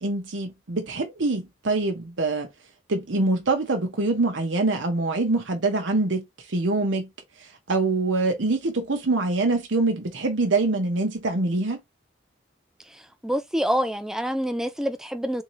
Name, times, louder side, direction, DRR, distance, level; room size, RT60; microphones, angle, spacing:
voice 1, 0.0-2.5 2.9-7.1 7.4-11.8, right 2 dB, 85° right, 0.9 m, -24 dB
voice 2, 13.2-15.4, equal, 5° right, 0.5 m, -26 dB
3.7 x 2.8 x 3.1 m
head